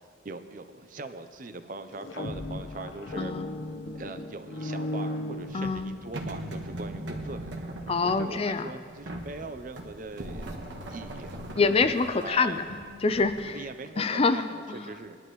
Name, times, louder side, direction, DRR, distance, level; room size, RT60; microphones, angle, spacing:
voice 1, 0.2-3.3 3.9-10.5 10.9-11.5 12.2-12.6 13.5-15.2, right 3 dB, 40° right, 9 dB, 0.6 m, -41 dB
sound 1, 1.9-6.1, left 2 dB, 80° left, 1.0 m, -36 dB
voice 2, 3.2-3.5 5.5-5.9 7.9-8.7 11.6-12.6 13.0-13.5 14.0-14.9, left 4 dB, 30° left, 10 dB, 0.4 m, -26 dB
sound 2, 5.3-13.4, right 1 dB, 65° right, 1.4 m, -39 dB
21.5 x 11.0 x 3.1 m, 2.3 s
head